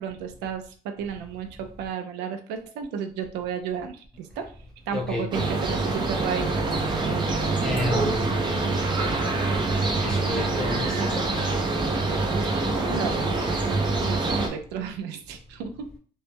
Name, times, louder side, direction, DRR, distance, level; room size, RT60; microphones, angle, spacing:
voice 1, 0.0-4.5 4.9-6.7 12.8-13.5 14.0-15.9, right 7 dB, 90° right, 0.4 m, -33 dB
voice 2, 4.9-5.3 7.6-8.4 10.0-11.3, left 2 dB, 5° left, 0.8 m, -31 dB
sound 1, 5.3-14.5, right 3 dB, 25° right, 0.5 m, -25 dB
2.1 x 2.0 x 3.2 m
cardioid pair, 110°, 17 cm